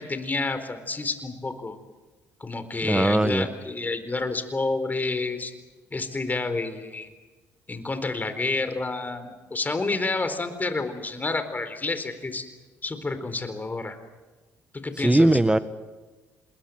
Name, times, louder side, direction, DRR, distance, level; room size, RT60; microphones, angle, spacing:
voice 1, 0.0-1.8 2.4-5.5 5.9-7.1 7.7-12.5 12.8-14.0 14.7-15.4, left 3 dB, 25° left, 9 dB, 4.2 m, -29 dB
voice 2, 2.8-3.5 15.0-15.6, right 1 dB, 10° right, 12 dB, 1.5 m, -19 dB
27.5 x 21.0 x 7.9 m, 1.2 s
supercardioid pair, 60°, 7 cm